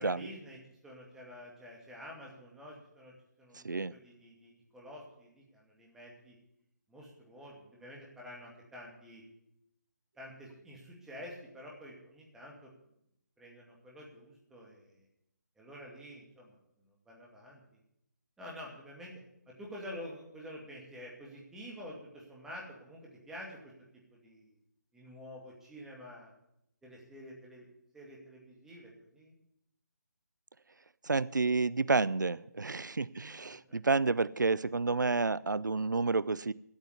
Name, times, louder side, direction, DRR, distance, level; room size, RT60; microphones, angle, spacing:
voice 1, 0.0-6.4 6.9-9.2 10.2-12.7 13.4-15.1 15.6-16.6 16.8-17.6 18.4-19.1 19.5-23.7 24.2-24.6 24.9-26.3 26.8-27.7 27.9-29.3, equal, 5° right, -3 dB, 2.4 m, -49 dB
voice 2, 3.5-3.9 31.0-36.5, right 3 dB, 90° right, 21 dB, 0.4 m, -30 dB
9.8 x 8.8 x 9.7 m, 0.79 s
figure-of-eight pair, 150°, 10 cm